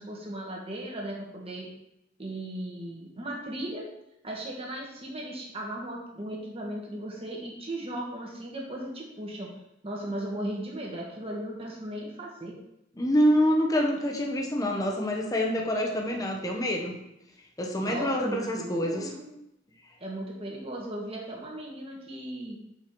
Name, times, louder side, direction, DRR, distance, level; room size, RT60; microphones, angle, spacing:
voice 1, 0.0-1.7 2.2-3.8 4.2-9.5 9.8-12.5 17.8-19.3 20.0-22.6, right 1 dB, 30° right, -2 dB, 1.9 m, -37 dB
voice 2, 13.0-16.9 17.6-19.1, equal, 20° left, 0 dB, 1.0 m, -26 dB
6.9 x 6.0 x 4.6 m, 0.85 s
head